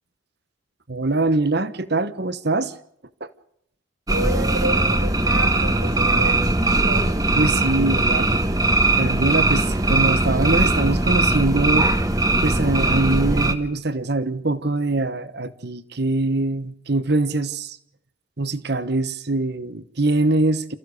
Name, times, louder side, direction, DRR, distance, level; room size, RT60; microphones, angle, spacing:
voice 1, 0.9-2.7 3.2-3.3 7.3-8.4 9.0-11.9 12.4-17.8 18.4-20.8, right 2 dB, 50° right, 1.2 m, -23 dB
sound 1, 4.1-13.5, right 2 dB, 15° right, 1.3 m, -20 dB
voice 2, 4.1-7.1, right 1 dB, 85° right, 6.9 m, -30 dB
29.0 x 15.0 x 6.6 m
head